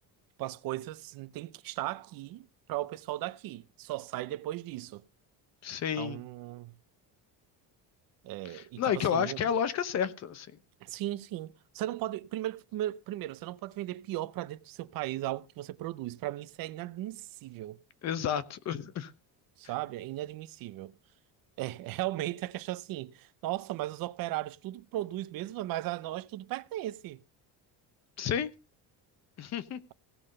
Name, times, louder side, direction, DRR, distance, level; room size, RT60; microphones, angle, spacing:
voice 1, 0.4-5.0 6.0-6.7 8.2-9.5 10.8-17.8 19.6-20.9 21.6-27.2, right 15 dB, 60° right, 0.7 m, -37 dB
voice 2, 5.6-6.2 8.4-10.5 18.0-19.1 28.2-28.5 29.4-29.8, left 8 dB, 40° left, 1.0 m, -31 dB
16.5 x 5.7 x 6.5 m
cardioid pair, 175°, 39 cm